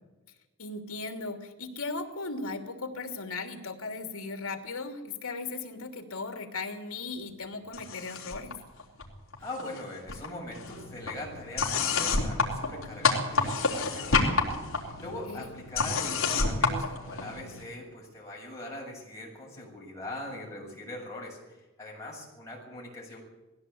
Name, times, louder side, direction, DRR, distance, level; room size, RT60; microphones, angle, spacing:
voice 1, 0.6-8.6 15.3-15.5, left 3 dB, 85° left, 5 dB, 2.9 m, -37 dB
sound 1, 7.7-8.5 8.8-9.8 10.1-17.6, left 4 dB, 70° left, 3.8 m, -29 dB
voice 2, 9.4-23.2, left 1 dB, 15° left, -4 dB, 7.3 m, -41 dB
19.5 x 16.0 x 8.6 m, 1.1 s
head